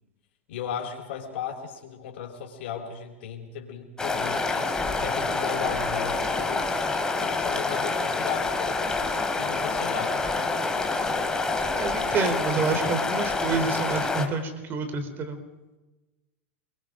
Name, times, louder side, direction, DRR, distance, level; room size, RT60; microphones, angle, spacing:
voice 1, 0.5-4.7 5.0-6.8 7.2-10.2, left 8 dB, 65° left, -3 dB, 4.7 m, -36 dB
sound 1, 4.0-14.3, left 3 dB, 10° left, 2.7 m, -27 dB
voice 2, 11.7-15.4, right 4 dB, 30° right, 9 dB, 4.0 m, -28 dB
29.0 x 22.5 x 5.2 m, 1.1 s
hypercardioid pair, 120°, 7 cm